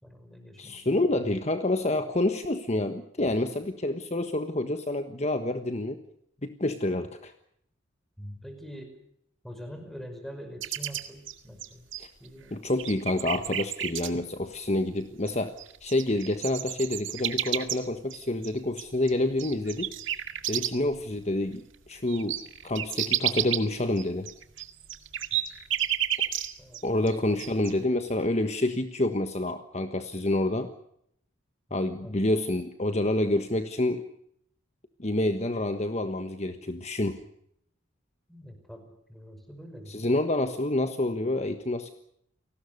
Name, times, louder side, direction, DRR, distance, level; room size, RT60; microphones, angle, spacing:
voice 1, 0.0-1.0 8.2-9.0 9.4-11.9 12.2-12.6 20.5-20.7 25.3-25.4 26.6-27.4 32.0-32.2 38.3-38.8 39.1-40.0, equal, ahead, 6 dB, 5.4 m, -44 dB
voice 2, 0.6-6.0 6.4-7.3 12.0-12.1 12.5-15.6 15.8-19.9 20.5-24.3 26.8-30.7 31.7-34.0 35.0-37.2 39.9-41.9, left 1 dB, 35° left, 8 dB, 1.4 m, -28 dB
sound 1, 10.6-12.3 12.7-14.1 15.3-15.4 15.6-21.0 21.3-21.4 21.7-26.8 27.1-27.7, right 11 dB, 70° right, 2.0 m, -31 dB
29.5 x 19.0 x 6.7 m, 0.72 s
head